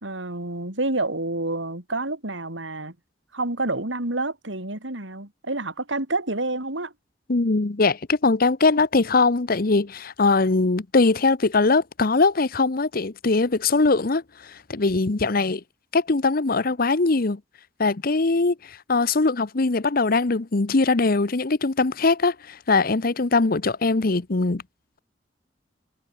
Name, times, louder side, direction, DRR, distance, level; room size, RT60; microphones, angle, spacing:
voice 1, 0.0-2.9 3.3-6.9, right 2 dB, 85° right, 4.8 m, -28 dB
voice 2, 7.3-14.2 14.5-15.6 15.9-17.4 17.8-24.6, left 3 dB, 50° left, 0.9 m, -21 dB
head